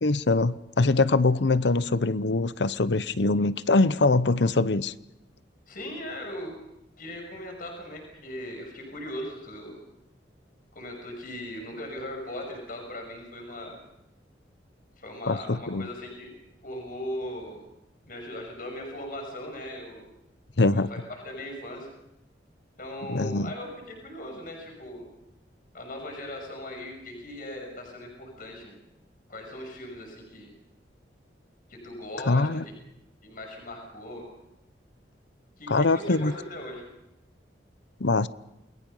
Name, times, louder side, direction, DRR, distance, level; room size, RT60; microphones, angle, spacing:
voice 1, 0.0-4.9 15.3-15.9 20.6-20.9 23.1-23.5 32.3-32.6 35.7-36.3 38.0-38.3, left 3 dB, 70° left, 0.8 m, -23 dB
voice 2, 5.7-6.5 7.0-9.8 10.7-13.7 15.0-16.3 16.6-17.6 18.1-20.1 20.7-21.9 22.8-25.0 25.7-28.7 29.3-30.5 31.7-32.6 33.2-34.2 35.6-36.8, left 1 dB, 50° left, 6.3 m, -39 dB
29.0 x 21.0 x 5.5 m
head